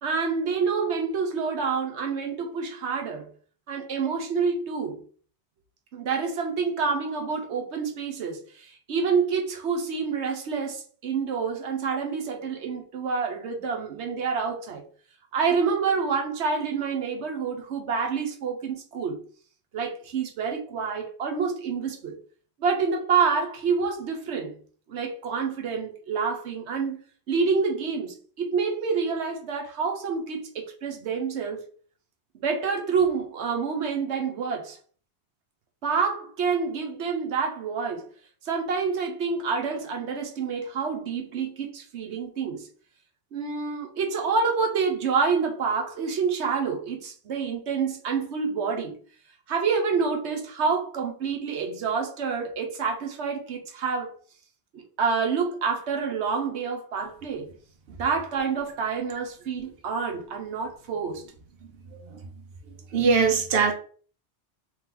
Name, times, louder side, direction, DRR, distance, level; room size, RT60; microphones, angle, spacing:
voice 1, 0.0-3.3 3.7-5.0 5.9-14.8 15.3-19.2 19.7-22.2 22.6-24.5 24.9-27.0 27.3-31.6 32.3-34.8 35.8-38.1 38.4-42.7 43.3-49.0 49.5-54.1 54.7-57.5 57.9-61.2, right 5 dB, 85° right, 1.1 m, -27 dB
voice 2, 62.9-63.7, right 5 dB, 65° right, 1.0 m, -22 dB
3.4 x 3.1 x 3.7 m
omnidirectional pair, 1.1 m